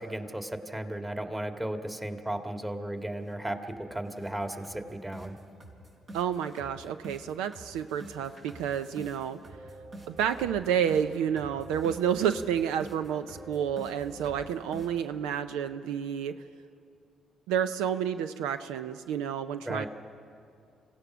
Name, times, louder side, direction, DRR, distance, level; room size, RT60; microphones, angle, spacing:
voice 1, 0.0-5.4 19.7-19.9, right 1 dB, 15° right, 5 dB, 1.9 m, -35 dB
sound 1, 2.7-2.8 3.2-3.4 3.7-3.8 4.2-15.2, right 1 dB, 60° right, 5.7 m, -47 dB
voice 2, 6.1-9.4 10.1-16.3 17.5-19.9, right 8 dB, 85° right, 11 dB, 0.5 m, -30 dB
27.0 x 16.5 x 6.1 m, 2.5 s
supercardioid pair, 55°, 0 cm